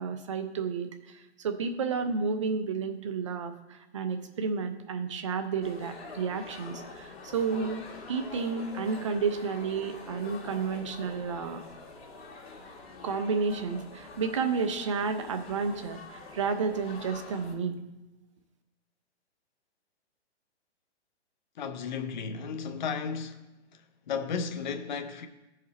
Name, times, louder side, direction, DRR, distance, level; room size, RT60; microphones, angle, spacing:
voice 1, 0.0-11.6 13.0-17.8, right 5 dB, 30° right, 0.5 m, -31 dB
sound 1, 5.6-17.5, left 3 dB, 60° left, 1.9 m, -45 dB
voice 2, 21.6-23.5 23.7-25.3, left 6 dB, 40° left, 0.7 m, -34 dB
13.5 x 5.0 x 4.1 m
hypercardioid pair, 165°, 34 cm